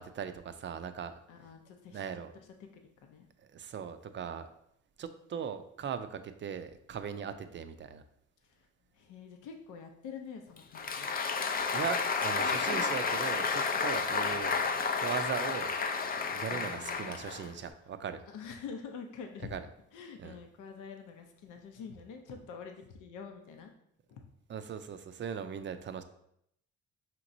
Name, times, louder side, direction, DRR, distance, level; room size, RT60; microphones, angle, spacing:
voice 1, 0.0-1.1 1.9-2.3 3.5-4.5 5.0-8.0 11.7-14.5 14.9-15.7 16.3-18.2 19.5-19.7 20.2-20.4 24.5-26.0, right 7 dB, 40° right, 10 dB, 0.4 m, -39 dB
voice 2, 1.3-2.0 2.7-3.3 8.4-8.7 8.9-11.1 13.7-14.1 16.5-17.5 18.3-19.5 19.9-23.7 24.1-24.2, left 6 dB, 85° left, 4 dB, 0.7 m, -47 dB
Applause, 10.6-17.7, left 5 dB, 30° left, 0.4 m, -31 dB
5.7 x 3.0 x 2.6 m, 0.74 s
cardioid pair, 90°, 30 cm